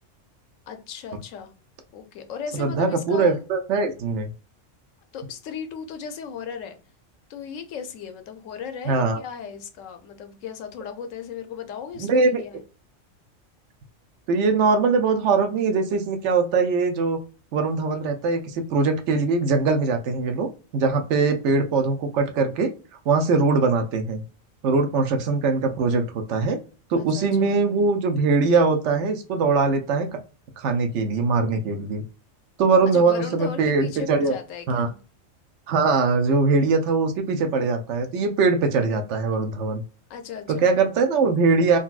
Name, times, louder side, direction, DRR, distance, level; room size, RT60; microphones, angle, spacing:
voice 1, 0.7-1.5 1.9-3.4 5.1-6.8 7.3-12.6 27.0-27.5 32.9-35.0 40.1-40.7, left 7 dB, 75° left, 0.9 m, -36 dB
voice 2, 2.5-4.3 8.9-9.2 12.0-12.4 14.3-17.2 17.5-22.7 23.1-24.2 24.6-26.6 26.9-30.1 30.6-32.0 32.6-34.3 34.7-34.9 35.7-39.8 40.5-41.8, right 4 dB, 70° right, 0.8 m, -21 dB
3.9 x 2.2 x 2.3 m
omnidirectional pair, 1.3 m